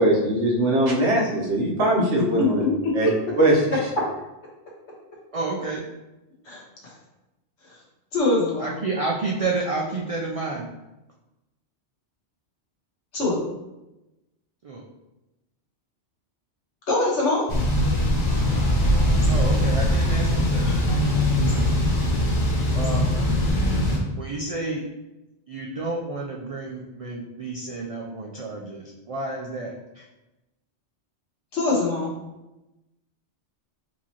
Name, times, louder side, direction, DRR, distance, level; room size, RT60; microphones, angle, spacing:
voice 1, 0.0-2.6 2.9-3.1 3.4-3.8, right 1 dB, 85° right, -3 dB, 1.3 m, -21 dB
voice 2, 2.4-2.9 6.5-6.6 8.1-8.7 13.1-13.4 16.9-17.4 31.5-32.1, left 2 dB, 75° left, -4 dB, 1.4 m, -23 dB
voice 3, 5.3-5.8 8.6-10.7 14.6-14.8 19.3-20.7 21.4-21.6 22.7-23.1 24.2-24.8 25.5-30.0, right 3 dB, 65° right, -2 dB, 0.3 m, -30 dB
Thunder / Bicycle, 17.5-24.0, left 1 dB, 45° left, 0.7 m, -21 dB
4.6 x 2.9 x 2.8 m, 0.98 s
omnidirectional pair, 1.2 m